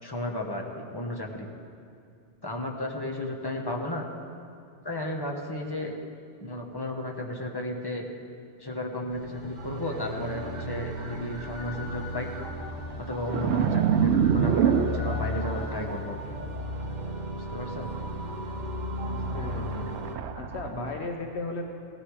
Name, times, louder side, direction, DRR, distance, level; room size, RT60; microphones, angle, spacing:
voice 1, 0.0-1.5 2.4-4.0 4.8-5.9 6.4-8.1 8.6-12.3 13.0-16.3 17.3-17.9 20.7-20.9, left 1 dB, 20° left, 1 dB, 1.3 m, -34 dB
sound 1, 9.1-20.2, left 1 dB, 40° right, 1.2 m, -35 dB
sound 2, 13.3-15.6 17.0-17.3 17.8-18.0 19.1-21.1, right 8 dB, 75° right, 0.9 m, -26 dB
voice 2, 19.0-19.9 20.4-21.7, left 3 dB, 70° left, 3 dB, 1.2 m, -36 dB
16.5 x 13.0 x 4.9 m, 2.4 s
omnidirectional pair, 1.2 m